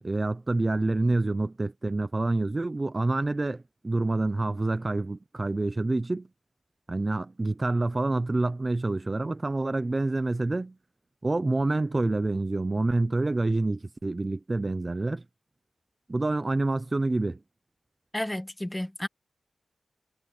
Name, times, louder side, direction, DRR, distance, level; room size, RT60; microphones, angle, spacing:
voice 1, 0.0-6.3 6.9-10.7 11.2-15.2 16.1-17.4, right 2 dB, 30° right, 0.7 m, -27 dB
voice 2, 18.1-19.1, left 1 dB, 10° left, 1.6 m, -32 dB
wide cardioid pair, 95°, 0 cm